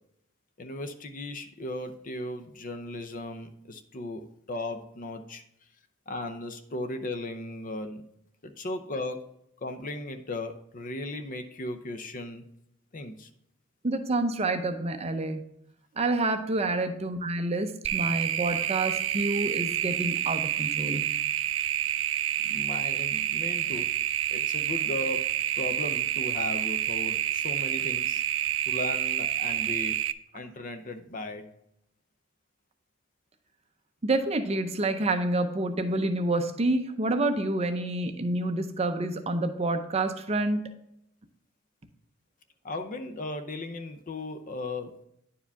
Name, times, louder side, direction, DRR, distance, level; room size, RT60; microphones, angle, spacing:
voice 1, 0.6-5.4 6.1-8.0 8.4-9.2 9.6-12.4 12.9-13.3 22.4-23.9 24.3-28.2 28.7-29.9 30.3-31.5 42.6-45.0, left 2 dB, 40° left, 8 dB, 0.6 m, -36 dB
voice 2, 13.8-15.5 16.0-21.0 34.0-40.7, right 2 dB, 30° right, 8 dB, 0.6 m, -28 dB
sound 1, 17.8-30.1, right 11 dB, 75° right, 0.4 m, -28 dB
9.9 x 4.9 x 3.4 m, 0.76 s
head